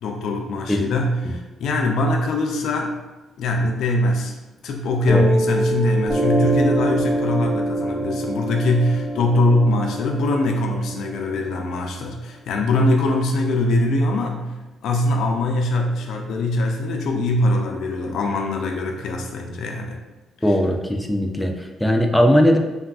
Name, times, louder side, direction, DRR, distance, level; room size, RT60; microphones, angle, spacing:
voice 1, 0.0-3.0 3.4-4.3 4.6-14.6 14.8-20.0, left 1 dB, 75° left, 2 dB, 0.3 m, -22 dB
Piano, 5.1-12.1, right 1 dB, 35° right, 0.7 m, -25 dB
voice 2, 20.4-22.6, equal, 5° left, 3 dB, 0.4 m, -19 dB
3.3 x 2.3 x 2.3 m, 1.1 s
cardioid pair, 90°, 0 cm